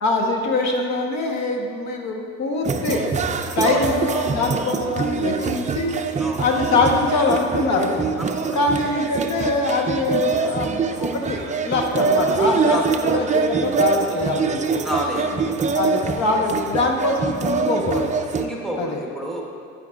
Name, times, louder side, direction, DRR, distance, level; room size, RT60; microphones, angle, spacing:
voice 1, 0.0-3.0 3.6-5.9 6.4-8.0 8.5-12.8 13.0-14.9 15.7-18.1 18.8-19.0, left 3 dB, 60° left, 1 dB, 1.1 m, -23 dB
sound 1, 2.7-18.4, right 5 dB, 25° right, 0.5 m, -24 dB
voice 2, 8.2-8.6 12.7-12.8 14.8-15.4 18.3-19.4, equal, ahead, -2 dB, 1.3 m, -29 dB
10.0 x 8.0 x 2.4 m, 2.3 s
supercardioid pair, 85°, 31 cm